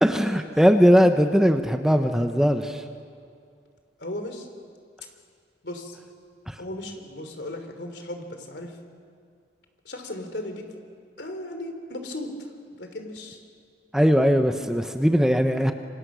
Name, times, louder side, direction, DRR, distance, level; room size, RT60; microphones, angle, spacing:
voice 1, 0.0-2.8 6.5-6.6 13.9-15.7, equal, 5° right, 6 dB, 0.9 m, -19 dB
voice 2, 4.0-4.5 5.6-6.0 6.6-8.7 9.8-10.7 11.2-12.3 12.8-13.4, left 1 dB, 75° left, 6 dB, 3.2 m, -36 dB
27.5 x 26.5 x 6.3 m, 2.3 s
head